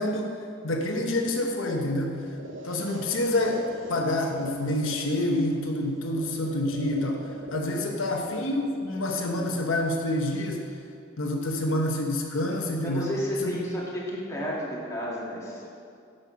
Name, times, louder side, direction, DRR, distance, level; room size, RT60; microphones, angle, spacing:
voice 1, 0.0-2.2 2.6-10.8 11.2-13.1 13.4-13.6, left 1 dB, 90° left, 1 dB, 1.0 m, -27 dB
sound 1, 2.1-10.1, right 1 dB, 75° right, 0.7 m, -44 dB
voice 2, 12.8-15.7, equal, 15° left, -7 dB, 2.0 m, -32 dB
9.5 x 6.8 x 5.7 m, 2.4 s
head